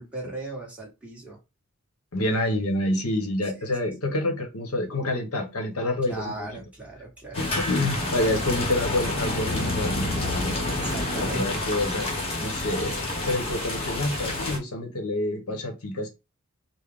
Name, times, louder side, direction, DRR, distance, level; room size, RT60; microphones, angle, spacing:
voice 1, 0.0-1.4 6.1-7.5 10.8-11.6, right 2 dB, 5° right, 1.3 m, -37 dB
voice 2, 2.1-6.6 7.3-10.7 11.1-13.0 13.2-16.1, left 1 dB, 85° left, 1.0 m, -28 dB
sound 1, 7.3-14.6, left 2 dB, 25° left, 0.9 m, -28 dB
4.0 x 2.1 x 3.4 m
head